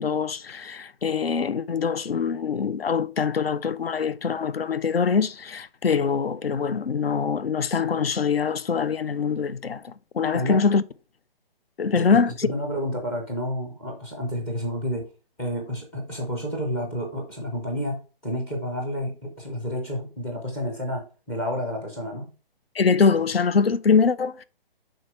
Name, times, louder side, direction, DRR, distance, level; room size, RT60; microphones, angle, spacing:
voice 1, 0.0-10.8 11.8-12.5 22.7-24.4, left 5 dB, 85° left, 0.6 m, -23 dB
voice 2, 10.3-10.6 11.9-15.1 15.4-22.3, equal, 5° left, 0.4 m, -30 dB
6.4 x 4.5 x 4.6 m
figure-of-eight pair, 135°, 29 cm